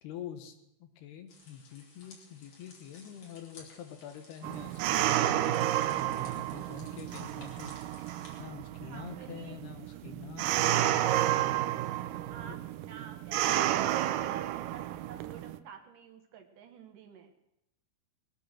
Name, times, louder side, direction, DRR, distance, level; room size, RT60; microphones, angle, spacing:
voice 1, 0.0-7.7 8.4-10.9, left 9 dB, 85° left, 7 dB, 3.3 m, -46 dB
sound 1, 1.3-8.4, left 3 dB, 55° left, 4.0 m, -56 dB
sound 2, 4.4-15.6, right 13 dB, 85° right, 1.9 m, -31 dB
voice 2, 8.8-9.6 9.9-10.0 12.3-17.3, right 7 dB, 65° right, 5 dB, 2.5 m, -51 dB
20.5 x 9.2 x 6.4 m, 0.85 s
omnidirectional pair, 4.5 m